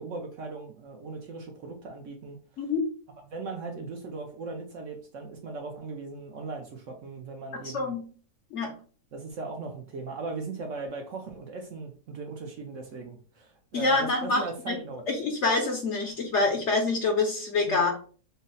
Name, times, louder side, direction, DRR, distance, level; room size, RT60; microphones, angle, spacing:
voice 1, 0.0-2.6 3.3-8.0 9.1-15.0 17.7-17.8, right 3 dB, 65° right, 2 dB, 0.8 m, -38 dB
voice 2, 7.6-8.0 8.5-8.7 13.7-14.8 15.1-17.9, left 3 dB, 60° left, 2 dB, 0.8 m, -26 dB
4.0 x 2.0 x 3.8 m, 0.41 s
omnidirectional pair, 1.7 m